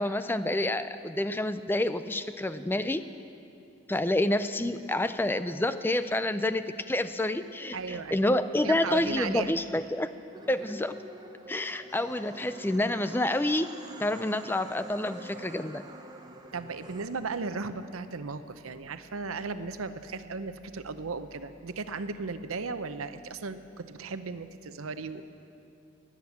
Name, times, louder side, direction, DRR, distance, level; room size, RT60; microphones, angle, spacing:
voice 1, 0.0-3.0 3.9-10.1 10.5-11.0 11.5-13.7 14.0-15.8, left 1 dB, 10° left, 12 dB, 0.4 m, -28 dB
voice 2, 7.7-8.2 8.6-9.6 16.5-25.2, right 4 dB, 85° right, 11 dB, 0.7 m, -36 dB
sound 1, 10.3-17.1, right 2 dB, 20° right, 0.8 m, -47 dB
19.0 x 9.6 x 7.2 m, 2.7 s
head